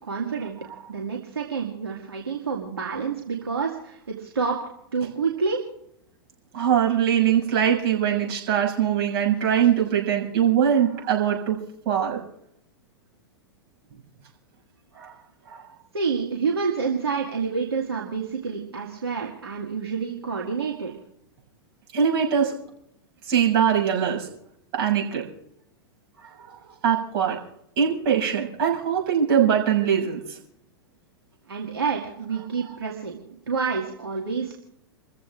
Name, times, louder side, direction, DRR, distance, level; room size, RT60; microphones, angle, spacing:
voice 1, 0.0-0.6 0.9-4.6 4.9-5.6 15.9-20.9 31.5-34.6, right 5 dB, 80° right, -1 dB, 2.0 m, -28 dB
voice 2, 6.5-11.6 11.8-12.2 14.9-15.1 15.5-15.6 21.9-22.5 23.2-24.3 24.7-25.2 26.4-26.5 26.8-27.4 27.7-30.4, right 8 dB, 45° right, 0 dB, 7.0 m, -22 dB
30.0 x 15.0 x 2.5 m, 0.76 s
figure-of-eight pair, 100°, 13 cm